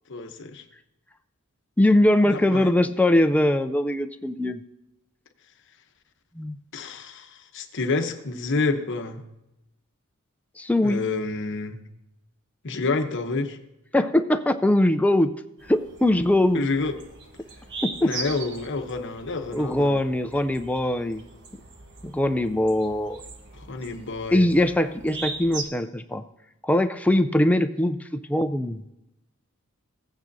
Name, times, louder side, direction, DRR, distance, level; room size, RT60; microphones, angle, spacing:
voice 1, 0.1-0.6 2.3-2.9 6.7-9.2 10.8-11.8 12.6-13.6 16.5-16.9 18.0-20.0 23.5-24.5, left 3 dB, 55° left, 7 dB, 0.9 m, -29 dB
voice 2, 1.8-4.6 6.4-6.6 10.6-11.0 13.9-15.3 15.7-16.6 17.8-18.1 19.5-21.2 22.0-23.2 24.3-26.2 26.6-28.8, left 1 dB, 5° left, 8 dB, 0.4 m, -21 dB
sound 1, 15.6-25.6, right 4 dB, 55° right, 1.2 m, -40 dB
15.5 x 9.0 x 2.7 m, 0.91 s
head